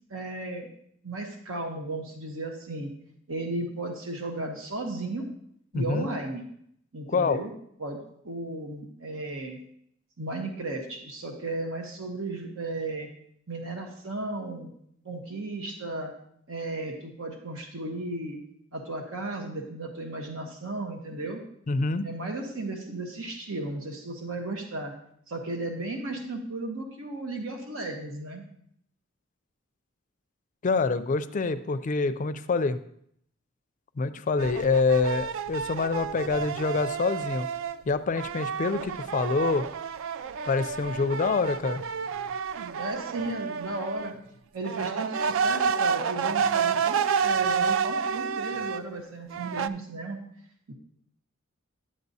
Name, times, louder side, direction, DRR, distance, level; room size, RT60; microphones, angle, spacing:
voice 1, 0.1-0.7 1.0-2.9 3.3-5.2 5.7-6.5 6.9-7.5 7.8-8.0 8.2-9.6 10.2-13.1 13.5-14.7 15.0-16.1 16.5-18.4 18.7-21.4 22.0-24.9 25.3-28.4 42.8-44.1 44.5-50.2 50.7-50.8, right 2 dB, 85° right, 3 dB, 1.0 m, -35 dB
voice 2, 5.7-6.1 7.1-7.4 21.7-22.1 30.6-32.8 34.0-37.5 37.9-39.7 40.5-41.8, left 4 dB, 40° left, 11 dB, 0.4 m, -26 dB
sound 1, 34.4-37.8 38.2-44.1 44.6-48.8 49.3-49.7, right 6 dB, 70° right, 0.3 m, -29 dB
10.5 x 7.5 x 2.7 m, 0.70 s
head